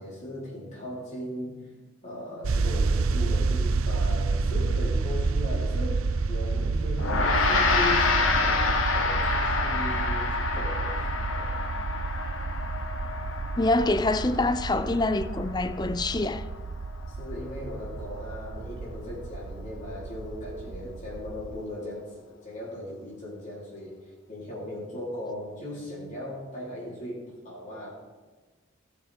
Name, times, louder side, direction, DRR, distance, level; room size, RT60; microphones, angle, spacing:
voice 1, 0.0-1.8 2.0-11.6 17.1-24.0 24.3-27.9, left 1 dB, 35° left, 4.1 m, -38 dB
sound 1, 2.4-21.6, right 3 dB, 90° right, 0.6 m, -30 dB
Gong, 7.0-16.5, left 3 dB, 75° left, 1.7 m, -28 dB
voice 2, 13.6-16.4, left 2 dB, 20° left, 0.5 m, -25 dB
17.5 x 7.3 x 5.1 m
head